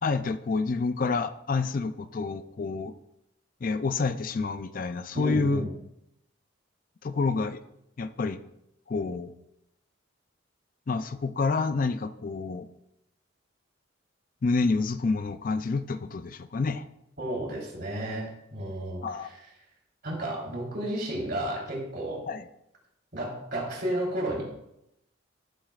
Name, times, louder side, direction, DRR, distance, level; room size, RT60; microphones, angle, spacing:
voice 1, 0.0-2.9 3.6-5.7 7.0-7.6 8.0-8.4 8.9-9.3 10.9-12.7 14.4-16.8 19.0-19.3 22.3-22.5, left 4 dB, 45° left, 11 dB, 0.4 m, -28 dB
voice 2, 5.1-5.7 17.2-19.4 20.0-22.2 23.1-24.4, right 1 dB, 55° right, -3 dB, 3.7 m, -32 dB
14.5 x 7.3 x 2.4 m, 0.81 s
head